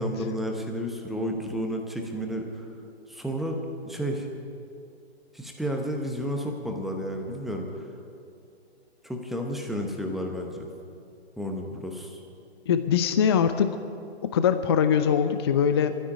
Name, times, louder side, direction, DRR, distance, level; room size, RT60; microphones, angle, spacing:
voice 1, 0.0-2.6 3.1-3.6 3.8-4.3 5.3-7.8 9.0-10.7 11.4-12.2, equal, ahead, 2 dB, 1.0 m, -31 dB
voice 2, 12.7-13.8 14.2-16.0, left 8 dB, 25° left, 10 dB, 0.4 m, -22 dB
12.0 x 9.7 x 9.8 m, 2.5 s
figure-of-eight pair, 125°, 33 cm